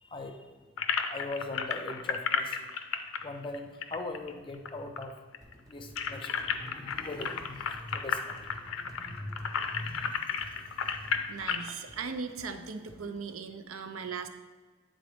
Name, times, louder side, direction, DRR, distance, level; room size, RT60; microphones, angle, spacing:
voice 1, 0.0-0.4 1.1-2.7 3.2-5.1 5.7-11.0, left 2 dB, 25° left, 6 dB, 0.5 m, -41 dB
sound 1, 0.8-4.7 5.0-5.1 5.3-11.7, left 6 dB, 80° left, 0.5 m, -33 dB
sound 2, 5.4-13.4, equal, 15° right, 0.8 m, -56 dB
voice 2, 11.3-14.3, right 5 dB, 90° right, 8 dB, 0.5 m, -38 dB
9.2 x 4.0 x 3.4 m, 1.4 s
head